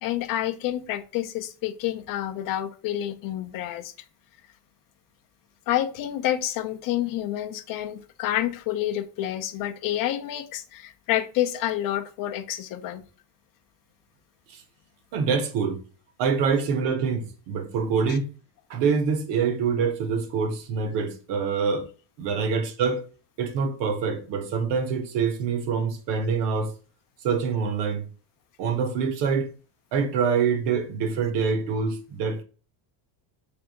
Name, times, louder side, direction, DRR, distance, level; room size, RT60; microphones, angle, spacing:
voice 1, 0.0-3.9 5.7-13.0 18.1-18.2, left 12 dB, 45° left, 0.5 m, -28 dB
voice 2, 15.1-15.8 16.2-18.3 18.7-21.9 22.2-23.0 23.4-26.7 27.2-28.1 28.6-29.5 29.9-32.4, right 5 dB, 60° right, 1.0 m, -25 dB
3.4 x 2.7 x 3.9 m
cardioid pair, 150°, 47 cm